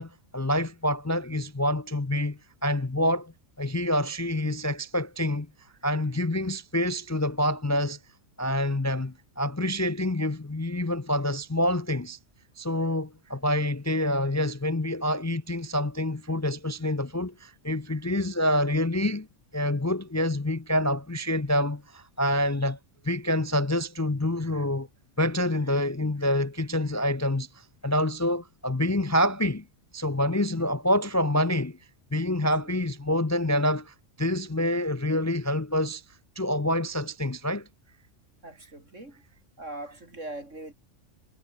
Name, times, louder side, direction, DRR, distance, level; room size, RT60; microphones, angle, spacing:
voice 1, 0.0-5.5 5.8-8.0 8.4-12.2 12.6-19.3 19.5-22.8 23.0-24.9 25.2-29.6 29.9-31.8 32.1-36.0 36.4-37.7, left 1 dB, 20° left, 0.5 m, -27 dB
voice 2, 38.4-39.2 39.6-40.7, right 2 dB, 75° right, 7.2 m, -41 dB
omnidirectional pair, 1.3 m